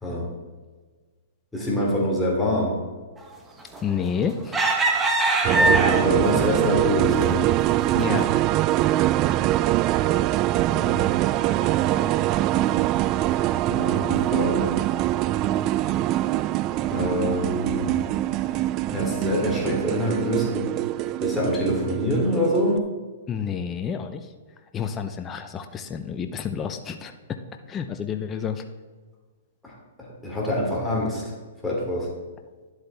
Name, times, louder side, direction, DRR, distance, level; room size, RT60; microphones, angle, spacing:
voice 1, 1.5-2.7 5.6-7.5 10.7-11.0 13.7-14.7 16.9-17.9 18.9-20.7 21.2-22.8 29.6-31.2 31.6-32.1, left 1 dB, 5° left, -4 dB, 3.1 m, -25 dB
sound 1, 3.7-4.1 4.5-6.3 6.9-7.0 7.5-7.7, right 2 dB, 10° right, 1.2 m, -21 dB
voice 2, 3.8-4.6 7.9-8.3 23.3-24.2 24.7-27.1 27.7-28.6, left 7 dB, 20° left, 7 dB, 0.6 m, -29 dB
sound 2, 5.4-22.8, right 14 dB, 35° right, 0.3 m, -23 dB
11.0 x 8.0 x 3.5 m, 1.4 s
hypercardioid pair, 130°, 0 cm